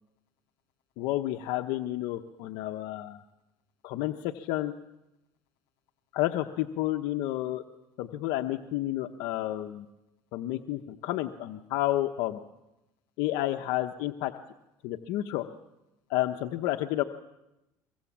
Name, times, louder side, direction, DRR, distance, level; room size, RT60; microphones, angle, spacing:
voice 1, 1.0-3.2 3.8-4.7 6.1-7.6 8.0-9.9 10.3-12.4 13.2-14.3 14.8-15.5 16.1-17.0, left 15 dB, 75° left, 6 dB, 1.0 m, -30 dB
23.5 x 23.0 x 7.4 m, 0.92 s
cardioid pair, 115°, 8 cm